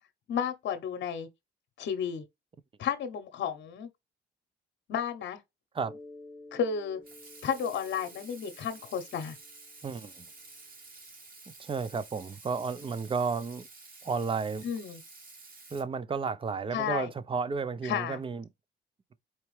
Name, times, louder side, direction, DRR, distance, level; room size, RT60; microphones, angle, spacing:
voice 1, 0.3-1.3 1.8-2.2 2.8-3.9 4.9-5.4 6.5-7.0 7.4-9.4 14.6-15.0 16.7-17.1 17.8-18.2, left 7 dB, 65° left, 0.8 m, -32 dB
Mallet percussion, 5.8-10.2, left 2 dB, ahead, 0.9 m, -52 dB
Water tap faucet / Sink (filling or washing), 7.0-15.8, right 3 dB, 45° right, 1.7 m, -51 dB
voice 2, 9.8-10.3 11.6-13.7 14.0-14.7 15.7-18.4, right 5 dB, 25° right, 0.5 m, -32 dB
4.5 x 2.8 x 3.1 m
cardioid pair, 90°, 20 cm